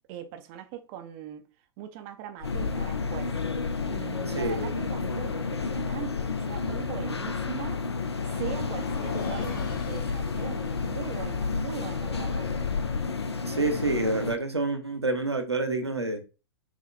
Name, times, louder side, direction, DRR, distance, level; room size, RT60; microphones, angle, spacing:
voice 1, 0.1-1.5 1.8-3.3 3.9-7.8 8.3-12.5, right 10 dB, 35° right, 0.4 m, -40 dB
sound 1, 2.4-14.4, left 4 dB, 80° left, 0.4 m, -32 dB
Bus, 2.4-13.1, left 6 dB, 60° left, 1.7 m, -36 dB
voice 2, 4.3-4.7 13.5-16.2, right 2 dB, 85° right, 0.8 m, -28 dB
6.3 x 2.1 x 2.2 m
figure-of-eight pair, 100°, 14 cm